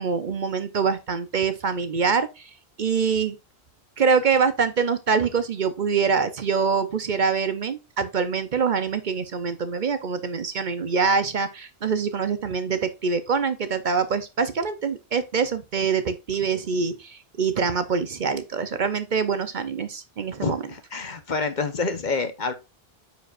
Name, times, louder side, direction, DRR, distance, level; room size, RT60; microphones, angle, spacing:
voice 1, 0.0-2.3 2.8-3.4 4.0-20.6, right 5 dB, 55° right, 0.8 m, -24 dB
voice 2, 20.4-22.5, left 4 dB, 50° left, 1.0 m, -27 dB
9.0 x 5.2 x 2.4 m
omnidirectional pair, 1.0 m